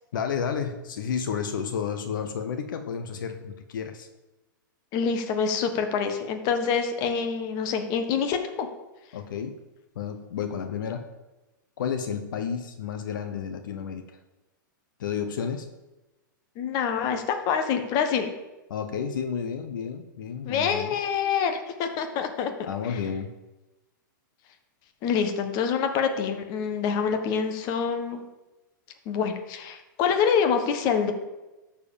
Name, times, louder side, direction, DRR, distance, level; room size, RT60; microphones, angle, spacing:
voice 1, 0.1-4.1 9.1-9.6 9.9-11.1 11.8-14.1 15.0-15.7 18.7-20.9 22.6-23.3, left 7 dB, 70° left, 7 dB, 1.0 m, -31 dB
voice 2, 4.9-8.7 16.6-18.3 20.4-23.0 25.0-28.2 29.0-31.1, left 6 dB, 35° left, 6 dB, 1.3 m, -26 dB
12.5 x 4.8 x 7.1 m, 1.1 s
hypercardioid pair, 135°, 11 cm